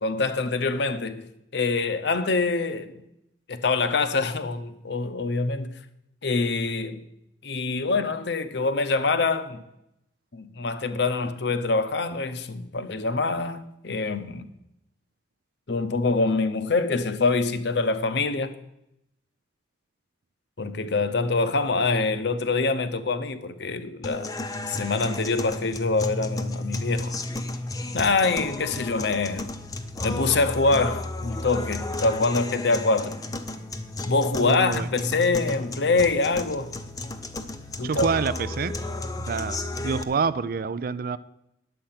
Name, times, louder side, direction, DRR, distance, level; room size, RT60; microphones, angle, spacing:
voice 1, 0.0-1.3 1.5-3.0 3.5-5.8 6.2-7.0 7.4-9.6 10.3-14.5 15.7-18.5 20.6-24.3 24.7-27.1 27.9-29.5 30.0-33.2 34.1-36.7 37.8-38.1, left 3 dB, 65° left, 0.8 m, -25 dB
sound 1, 24.0-40.0, left 2 dB, 20° left, 0.7 m, -33 dB
voice 2, 34.4-34.9 37.8-38.7 39.2-41.2, right 5 dB, 50° right, 0.4 m, -27 dB
10.5 x 7.7 x 5.8 m
head